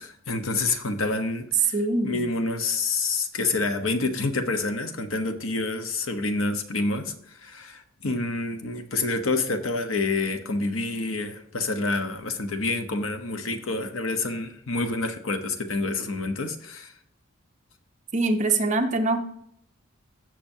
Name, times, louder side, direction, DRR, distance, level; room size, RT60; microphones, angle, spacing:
voice 1, 0.0-1.7 2.0-16.9, left 3 dB, 80° left, 7 dB, 1.0 m, -28 dB
voice 2, 1.7-2.3 18.1-19.2, right 2 dB, 35° right, 5 dB, 0.9 m, -24 dB
16.0 x 6.1 x 2.8 m, 0.69 s
head